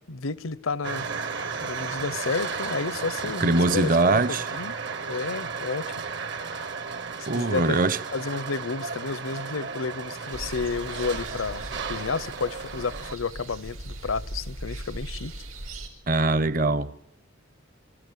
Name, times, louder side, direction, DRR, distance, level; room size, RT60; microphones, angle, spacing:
voice 1, 0.1-1.1 1.6-4.7 5.1-5.9 7.3-7.8 8.1-15.3, left 4 dB, 85° left, 0.8 m, -31 dB
sound 1, 0.8-13.2, right 5 dB, 60° right, 1.2 m, -34 dB
voice 2, 3.4-4.5 7.3-8.0 16.1-17.1, right 2 dB, 40° right, 0.8 m, -22 dB
sound 2, 10.3-15.9, right 1 dB, 90° right, 4.4 m, -39 dB
25.0 x 14.0 x 9.3 m
head